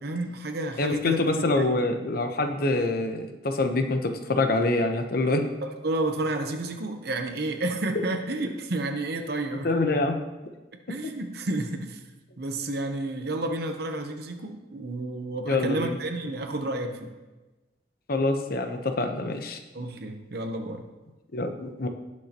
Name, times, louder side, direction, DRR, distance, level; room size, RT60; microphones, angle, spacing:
voice 1, 0.0-1.7 5.6-9.7 10.9-12.0 12.4-17.1 19.7-20.8, right 2 dB, 60° right, 5 dB, 0.8 m, -31 dB
voice 2, 0.8-5.4 9.6-10.2 15.5-16.0 18.1-19.6 21.3-21.9, left 2 dB, 55° left, 6 dB, 0.9 m, -25 dB
18.5 x 6.3 x 3.0 m, 1.1 s
head